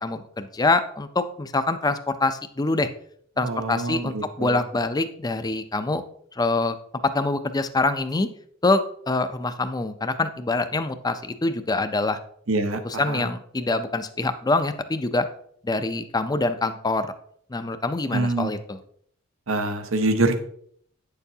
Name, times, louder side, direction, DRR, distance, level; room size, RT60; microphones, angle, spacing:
voice 1, 0.0-2.9 3.4-6.0 6.3-6.8 7.0-8.3 8.6-12.2 12.8-15.3 15.6-17.1 17.5-18.8, left 3 dB, 20° left, 10 dB, 0.5 m, -25 dB
voice 2, 3.4-4.6 12.5-12.8 13.1-13.3 18.1-18.5 19.5-20.4, right 2 dB, 80° right, 7 dB, 0.9 m, -25 dB
8.9 x 6.8 x 2.8 m, 0.64 s
head